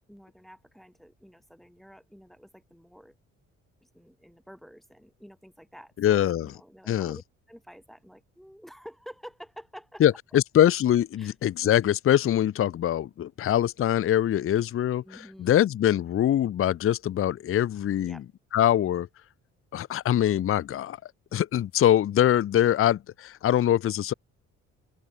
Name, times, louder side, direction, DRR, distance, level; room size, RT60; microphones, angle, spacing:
voice 1, 0.1-3.1 3.8-7.2 7.5-10.0 11.2-11.3 15.0-15.6 18.0-18.2, equal, ahead, 4.6 m, -49 dB
voice 2, 6.0-6.5 6.9-7.2 10.0-15.0 15.4-18.2 18.5-19.1 19.7-21.0 21.3-24.1, left 11 dB, 45° left, 0.6 m, -23 dB
open air
cardioid pair, 90°, 30 cm